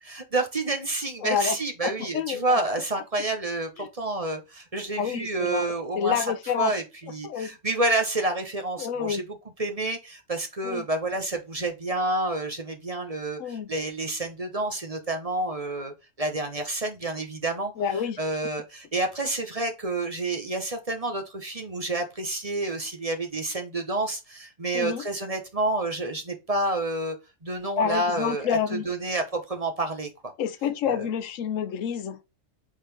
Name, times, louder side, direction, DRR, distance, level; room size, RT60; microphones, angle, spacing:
voice 1, 0.0-6.3 6.6-17.7 18.2-27.2 27.4-28.6 28.8-30.1 30.9-31.1, right 2 dB, 30° right, 1.2 m, -29 dB
voice 2, 1.2-1.6 1.8-2.6 3.8-3.9 5.0-6.7 7.2-7.5 8.8-9.2 10.6-10.9 13.4-13.7 17.8-18.2 24.7-25.0 27.8-28.9 30.4-32.2, left 8 dB, 80° left, 1.0 m, -28 dB
8.2 x 4.0 x 3.5 m
omnidirectional pair, 1.3 m